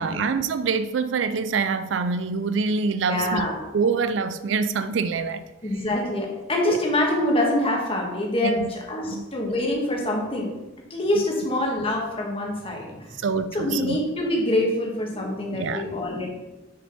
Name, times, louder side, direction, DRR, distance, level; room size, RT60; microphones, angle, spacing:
voice 1, 0.0-3.5 3.7-5.4 5.7-5.8 6.7-6.8 8.4-8.7 9.0-9.3 11.2-11.3 13.2-14.0 15.5-15.8, right 5 dB, 70° right, 12 dB, 0.4 m, -25 dB
voice 2, 3.1-3.5 5.6-10.5 10.9-13.1 13.5-16.3, left 1 dB, 30° left, -1 dB, 1.6 m, -25 dB
6.8 x 5.2 x 5.4 m, 1.1 s
head